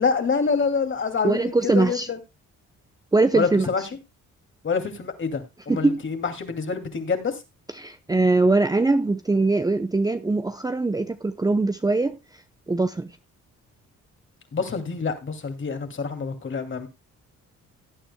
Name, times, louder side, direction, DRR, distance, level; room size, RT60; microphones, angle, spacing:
voice 1, 0.0-2.2 3.3-3.8 4.6-7.4 14.5-16.9, left 5 dB, 40° left, 2.5 m, -26 dB
voice 2, 1.2-2.1 3.1-3.7 5.7-6.0 7.7-12.2 12.7-13.1, right 3 dB, 15° right, 0.7 m, -22 dB
18.0 x 9.0 x 2.2 m
cardioid pair, 90°, 30 cm